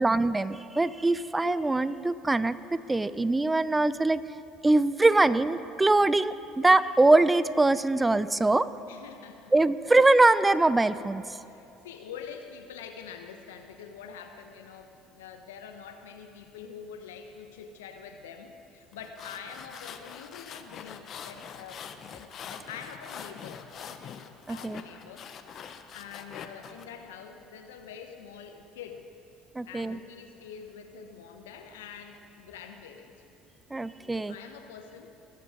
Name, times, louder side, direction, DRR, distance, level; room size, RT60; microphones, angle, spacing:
voice 1, 0.0-4.2 4.6-8.7 9.5-11.2 24.5-24.8 29.6-30.0 33.7-34.3, right 2 dB, 15° right, 16 dB, 0.5 m, -23 dB
voice 2, 8.9-9.5 11.4-24.2 24.5-25.3 25.6-29.1 29.7-33.1 34.1-35.1, left 7 dB, 85° left, 6 dB, 1.0 m, -45 dB
sound 1, 18.9-26.9, left 7 dB, 50° left, 0.8 m, -44 dB
19.5 x 6.9 x 5.1 m, 2.7 s
hypercardioid pair, 75°, 0 cm